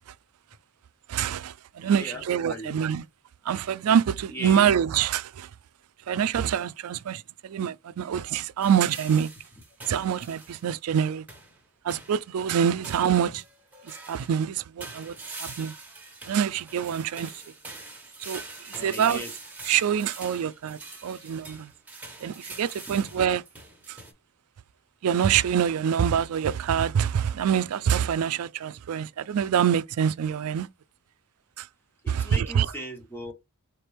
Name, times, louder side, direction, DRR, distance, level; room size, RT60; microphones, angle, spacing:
voice 1, 1.1-3.0 3.4-5.5 6.1-9.3 9.9-11.2 11.8-13.4 13.8-15.7 16.3-17.4 18.2-18.4 18.7-19.2 19.6-21.7 22.2-23.4 23.9-24.0 25.0-30.7 31.6-31.7 32.1-32.7, right 8 dB, 90° right, 0.4 m, -25 dB
voice 2, 1.8-2.8 4.3-4.8 18.7-19.3 32.0-33.3, equal, 10° left, 1.3 m, -38 dB
sound 1, 8.6-10.7 11.3-11.6 11.9-12.3 12.8-14.4 14.8-24.1, right 3 dB, 5° right, 1.3 m, -44 dB
4.4 x 3.4 x 3.3 m
head